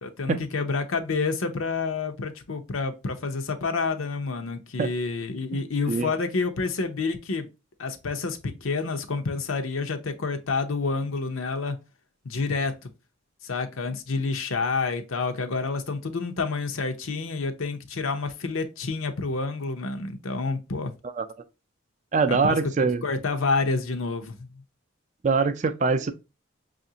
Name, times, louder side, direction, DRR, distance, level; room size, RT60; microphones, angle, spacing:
voice 1, 0.0-7.5 7.8-11.8 12.2-12.9 13.4-20.9 22.3-24.6, left 4 dB, 80° left, 0.7 m, -29 dB
voice 2, 22.1-23.0 25.2-26.1, right 4 dB, 35° right, 0.3 m, -23 dB
5.6 x 2.5 x 2.7 m
head